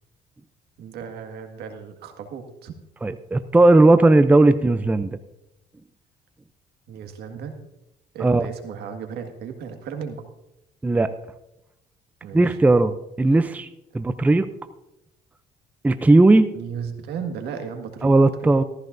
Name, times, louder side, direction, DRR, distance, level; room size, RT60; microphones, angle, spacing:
voice 1, 0.8-2.7 6.9-7.6 8.1-10.2 12.2-12.6 16.5-18.1 18.4-18.5, right 7 dB, 75° right, 5 dB, 1.8 m, -35 dB
voice 2, 3.0-5.2 8.2-8.5 10.8-11.1 12.3-13.7 13.9-14.5 15.8-16.5 18.0-18.6, right 2 dB, 10° right, 11 dB, 0.5 m, -17 dB
15.0 x 14.5 x 2.6 m, 0.87 s
cardioid pair, 110°, 17 cm